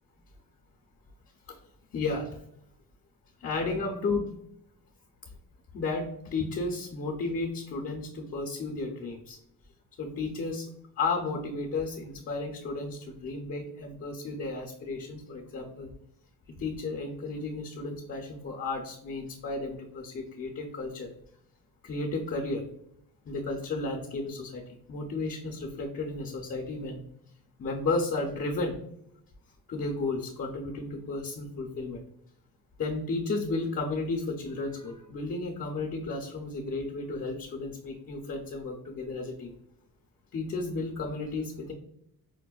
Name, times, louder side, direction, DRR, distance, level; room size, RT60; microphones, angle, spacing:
voice 1, 1.9-2.3 3.4-4.3 5.7-9.4 10.0-10.7 11.0-15.9 16.6-21.1 21.8-22.6 23.3-24.6 24.9-27.0 27.6-28.8 29.7-32.0 32.8-39.5 40.3-41.7, left 3 dB, 40° left, 1 dB, 0.6 m, -33 dB
5.1 x 2.1 x 2.3 m, 0.74 s
cardioid pair, 130°, 36 cm